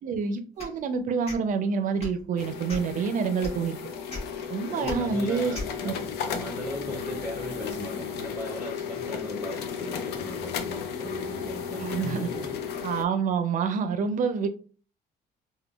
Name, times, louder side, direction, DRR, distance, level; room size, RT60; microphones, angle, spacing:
voice 1, 0.0-3.8 4.5-5.6 5.8-5.9 11.8-12.2 12.8-14.5, right 5 dB, 50° right, 9 dB, 0.5 m, -27 dB
sound 1, 0.6-0.8 1.2-1.4 2.0-2.2 2.7-3.0 3.4-3.5 4.1-4.2 4.8-5.0 5.5-5.7, left 2 dB, 35° left, 1.2 m, -35 dB
sound 2, 2.4-13.1, left 7 dB, 80° left, 0.5 m, -34 dB
voice 2, 4.7-12.6, equal, 10° right, -1 dB, 0.6 m, -38 dB
3.6 x 2.2 x 2.3 m, 0.41 s
cardioid pair, 110°, 17 cm